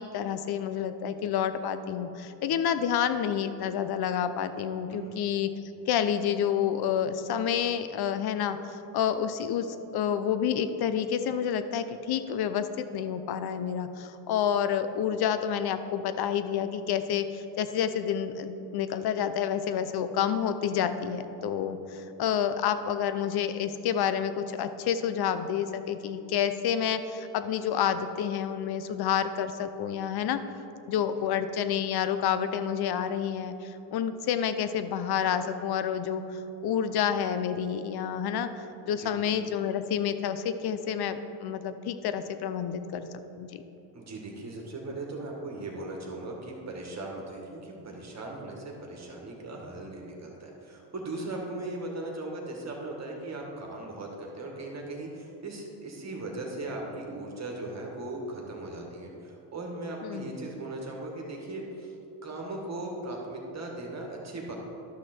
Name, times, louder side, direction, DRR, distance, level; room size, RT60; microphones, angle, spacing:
voice 1, 0.0-5.5 5.9-30.4 30.9-43.1 43.4-43.6 60.0-60.3, left 8 dB, 50° left, 11 dB, 0.7 m, -29 dB
voice 2, 39.0-39.4 43.9-61.9 62.2-64.6, right 2 dB, 35° right, 0 dB, 2.0 m, -38 dB
12.0 x 6.0 x 4.5 m, 2.9 s
supercardioid pair, 80°, 48 cm